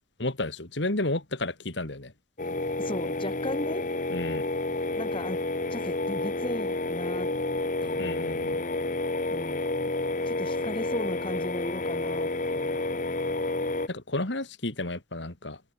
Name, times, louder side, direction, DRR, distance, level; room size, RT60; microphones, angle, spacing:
voice 1, 0.2-2.1 4.1-4.4 8.0-8.6 13.9-15.6, left 2 dB, 70° left, 2.6 m, -32 dB
sound 1, 2.4-13.9, left 2 dB, 45° left, 1.6 m, -30 dB
voice 2, 2.8-3.9 5.0-5.4 5.7-7.3 7.6-7.7 9.3-9.7 10.3-13.0, left 1 dB, 30° left, 2.9 m, -36 dB
Acoustic guitar / Strum, 7.8-11.1, equal, 25° right, 4.9 m, -53 dB
open air
head